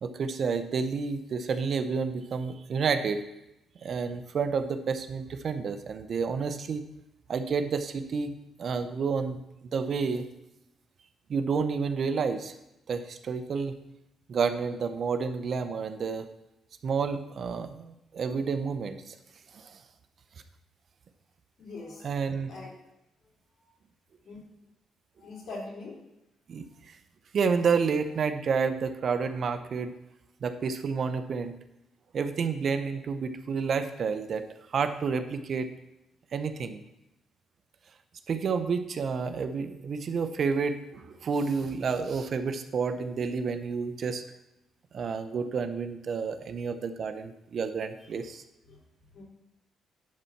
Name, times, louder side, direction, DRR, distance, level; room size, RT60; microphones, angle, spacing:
voice 1, 0.0-3.2 3.8-6.8 7.3-8.3 8.6-9.4 9.7-10.2 11.3-12.5 12.9-13.8 14.3-16.3 16.8-19.1 19.5-19.8 22.0-22.5 26.5-27.0 27.3-29.9 30.4-31.6 32.1-35.7 36.3-36.8 38.3-44.2 44.9-48.4, right 5 dB, 55° right, 9 dB, 0.7 m, -30 dB
voice 2, 21.6-22.0 22.5-22.7 24.2-24.4 25.2-25.9 48.7-48.8 49.1-49.2, left 3 dB, 65° left, -3 dB, 3.3 m, -41 dB
10.5 x 4.1 x 5.8 m, 0.88 s
cardioid pair, 90°, 0 cm